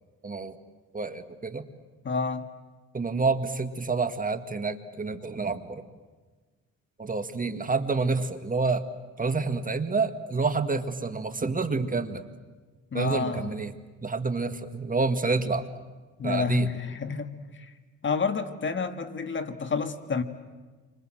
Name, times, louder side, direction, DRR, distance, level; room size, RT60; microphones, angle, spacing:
voice 1, 0.2-0.5 0.9-1.6 2.9-5.8 7.0-8.8 9.2-12.3 12.9-13.7 14.0-15.7 16.2-16.7, right 4 dB, 25° right, 9 dB, 1.8 m, -28 dB
voice 2, 2.0-2.5 12.9-13.5 16.2-17.7 18.0-20.2, left 5 dB, 40° left, 8 dB, 2.1 m, -29 dB
30.0 x 25.0 x 7.7 m, 1.3 s
cardioid pair, 90°, 30 cm